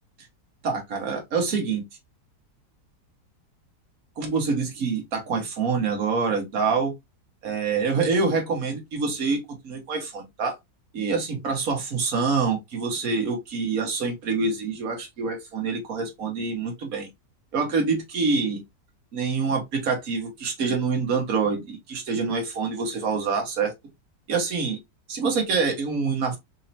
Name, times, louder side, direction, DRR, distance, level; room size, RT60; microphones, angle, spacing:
voice 1, 0.6-1.8 4.2-6.9 7.4-10.6 10.9-17.1 17.5-18.6 19.1-23.7 24.3-24.8 25.1-26.4, right 4 dB, 55° right, 1.7 m, -26 dB
4.3 x 2.8 x 2.7 m
omnidirectional pair, 1.9 m